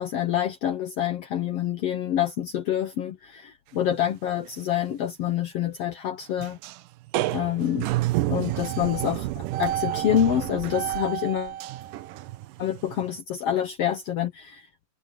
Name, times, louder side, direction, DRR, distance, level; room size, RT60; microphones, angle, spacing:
voice 1, 0.0-6.6 7.3-7.9 8.3-11.6 12.6-14.9, left 10 dB, 65° left, 1.6 m, -27 dB
sound 1, 3.9-4.1 4.4-4.5 4.9-5.0 6.4-6.8 7.1-13.2, right 15 dB, 90° right, 2.4 m, -29 dB
omnidirectional pair, 3.7 m